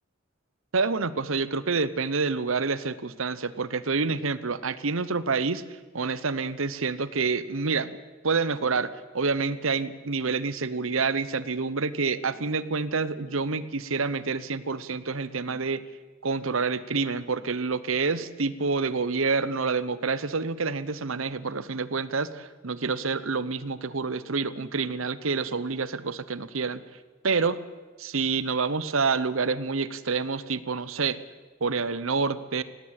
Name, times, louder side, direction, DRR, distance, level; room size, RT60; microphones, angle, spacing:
voice 1, 0.7-5.6 5.9-7.9 8.2-15.8 16.2-26.8 27.2-27.6 28.0-31.2 31.6-32.6, right 4 dB, 80° right, 16 dB, 1.0 m, -28 dB
17.5 x 16.5 x 9.0 m, 1.3 s
head